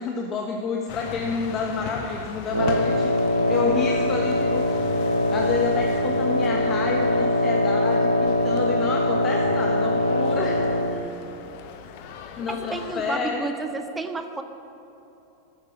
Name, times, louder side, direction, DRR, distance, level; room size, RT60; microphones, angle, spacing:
voice 1, 0.0-4.9 5.3-11.0 12.4-13.5, left 4 dB, 30° left, 1 dB, 1.3 m, -29 dB
sound 1, 0.9-13.2, left 6 dB, 45° left, 1.2 m, -39 dB
Wind instrument woodwind instrument, 2.5-11.1, left 1 dB, 85° right, 0.6 m, -22 dB
voice 2, 12.5-14.4, right 3 dB, 10° right, 8 dB, 0.9 m, -31 dB
15.0 x 12.0 x 6.5 m, 2.9 s
figure-of-eight pair, 90°, 0 cm